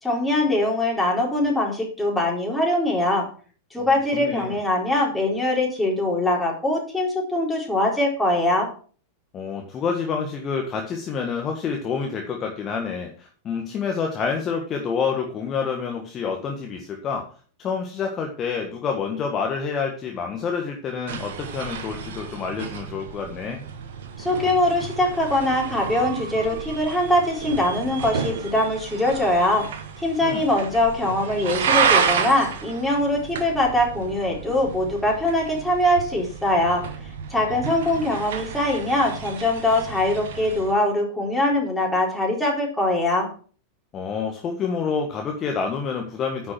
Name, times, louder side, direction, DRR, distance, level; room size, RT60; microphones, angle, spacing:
voice 1, 0.0-3.3 3.7-8.7 24.2-29.7 30.0-36.8 37.3-43.3, left 1 dB, 5° left, -3 dB, 4.1 m, -22 dB
voice 2, 4.1-4.6 9.3-17.2 17.6-23.6 30.2-30.4 43.9-46.5, left 5 dB, 30° left, 2 dB, 1.5 m, -28 dB
sound 1, 21.1-40.7, right 7 dB, 55° right, 1.3 m, -30 dB
9.8 x 6.3 x 5.9 m, 0.42 s
figure-of-eight pair, 90°, 0 cm